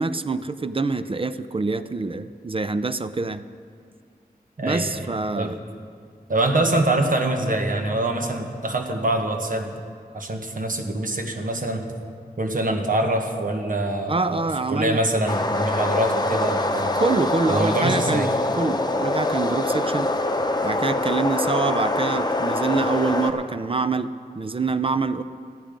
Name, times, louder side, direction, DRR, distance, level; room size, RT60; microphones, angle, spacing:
voice 1, 0.0-3.4 4.6-5.6 14.1-15.0 16.9-20.1 20.6-25.2, right 3 dB, 35° right, 11 dB, 0.5 m, -25 dB
voice 2, 4.6-5.5 6.3-9.7 10.1-11.8 12.4-17.0 17.5-18.3, right 1 dB, 60° right, 4 dB, 1.4 m, -24 dB
sound 1, 15.3-23.3, left 2 dB, 25° left, 0.9 m, -24 dB
14.0 x 10.5 x 5.1 m, 2.2 s
wide cardioid pair, 55°, 16 cm